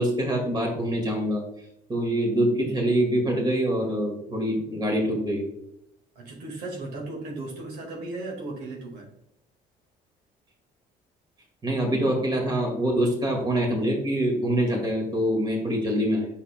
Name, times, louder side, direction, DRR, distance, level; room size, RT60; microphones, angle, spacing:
voice 1, 0.0-1.4 1.9-5.5 11.6-16.3, right 1 dB, 25° right, 0 dB, 1.9 m, -25 dB
voice 2, 6.2-9.1, right 2 dB, 75° right, 0 dB, 1.8 m, -36 dB
8.1 x 6.0 x 2.2 m, 0.81 s
cardioid pair, 110°, 17 cm